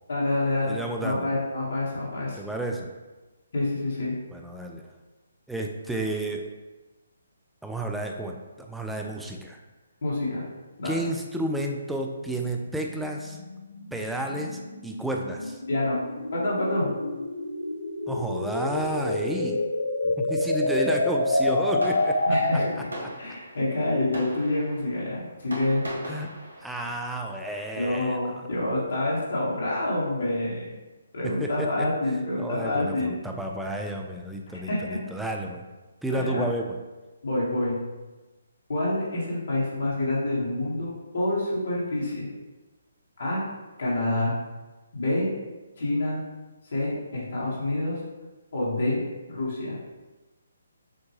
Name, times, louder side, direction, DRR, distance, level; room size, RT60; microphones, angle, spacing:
voice 1, 0.1-2.4 3.5-4.1 10.0-10.4 10.8-11.0 15.7-16.0 16.3-16.9 22.3-22.7 23.2-25.9 27.8-30.8 31.1-33.1 34.7-35.0 36.1-36.5 37.2-37.8 38.7-42.3 43.2-43.4 43.8-44.3 44.9-45.3 45.8-46.2 46.7-48.0 48.5-49.0 49.3-49.8, left 1 dB, 65° left, -6 dB, 1.5 m, -27 dB
voice 2, 0.6-1.3 2.4-2.9 4.3-4.8 5.5-6.4 7.6-9.6 10.8-13.4 13.9-15.6 18.1-19.6 20.0-22.4 26.1-26.3 26.6-28.4 31.2-31.9 32.4-35.6 36.0-36.8, right 1 dB, 5° right, 1 dB, 0.4 m, -31 dB
sound 1, 11.8-22.9, left 2 dB, 85° left, 0.6 m, -28 dB
Fireworks, 20.6-29.9, equal, 85° right, 1.5 m, -43 dB
6.4 x 2.2 x 3.2 m, 1.2 s
figure-of-eight pair, 145°, 0 cm